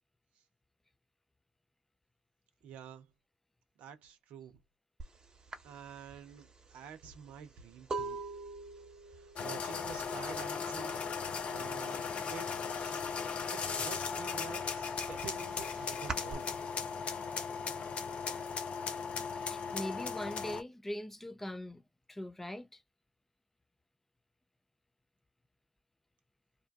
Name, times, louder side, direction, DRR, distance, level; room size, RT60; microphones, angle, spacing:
voice 1, 2.6-3.1 3.8-4.6 5.6-8.2 9.1-12.5 12.8-13.1 13.5-16.6, right 8 dB, 65° right, 0.6 m, -49 dB
sound 1, 5.0-5.2 5.5-11.2 11.4-12.0 12.2-13.4 13.8-16.3, right 3 dB, 30° right, 1.1 m, -43 dB
sound 2, 9.4-20.6, left 5 dB, 55° left, 0.6 m, -37 dB
voice 2, 19.4-21.8 22.1-22.8, left 1 dB, 10° left, 0.4 m, -41 dB
2.5 x 2.2 x 2.5 m
hypercardioid pair, 45°, 3 cm